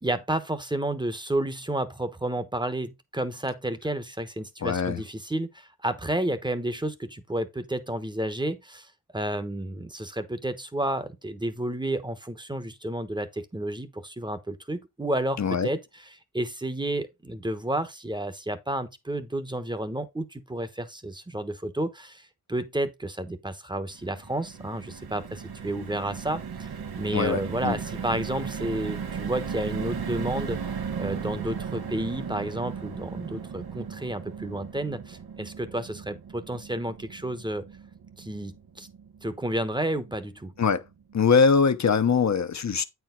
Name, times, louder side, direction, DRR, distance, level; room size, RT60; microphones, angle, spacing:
voice 1, 0.0-15.8 16.3-26.7 27.0-30.6 31.0-37.6 38.2-38.9 39.2-40.5, right 1 dB, 10° right, 1.0 m, -31 dB
voice 2, 4.6-5.0 15.4-15.7 27.1-27.8 40.6-40.8 41.1-42.8, left 5 dB, 50° left, 0.9 m, -22 dB
sound 1, 23.9-40.2 40.6-40.8 41.0-41.2, right 6 dB, 80° right, 1.1 m, -36 dB
8.8 x 4.6 x 3.8 m
wide cardioid pair, 95°, 37 cm